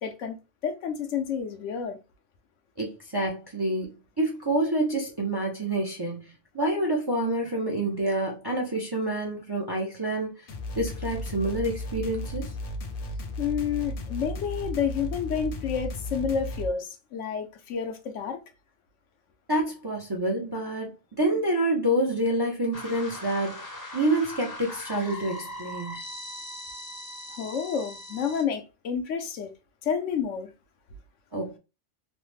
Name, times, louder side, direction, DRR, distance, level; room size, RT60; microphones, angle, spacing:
voice 1, 0.0-0.4 0.6-2.0 13.4-18.4 27.4-29.5 29.8-30.5, left 7 dB, 75° left, 1.0 m, -30 dB
voice 2, 2.8-3.9 4.2-6.3 6.5-10.3 10.8-12.5 19.5-20.9 21.2-25.9 31.3-31.6, right 1 dB, 30° right, 0.4 m, -27 dB
sound 1, 10.5-16.7, left 1 dB, 55° left, 0.7 m, -35 dB
sound 2, 22.7-28.4, left 1 dB, 20° left, 0.6 m, -40 dB
3.1 x 2.0 x 3.1 m
omnidirectional pair, 1.3 m